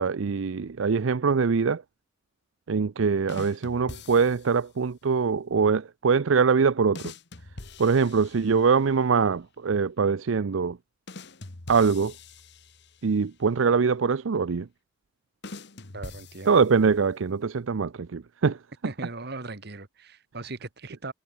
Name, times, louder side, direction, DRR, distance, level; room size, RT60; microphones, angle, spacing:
voice 1, 0.0-1.8 2.7-7.1 7.8-10.8 11.7-12.1 13.0-14.7 16.5-18.6, right 5 dB, 75° right, 0.5 m, -23 dB
sound 1, 3.3-4.7 6.9-8.9 11.1-13.2 15.4-17.0, left 3 dB, 60° left, 1.7 m, -44 dB
voice 2, 15.9-16.5 18.8-21.1, right 2 dB, 55° right, 1.8 m, -38 dB
head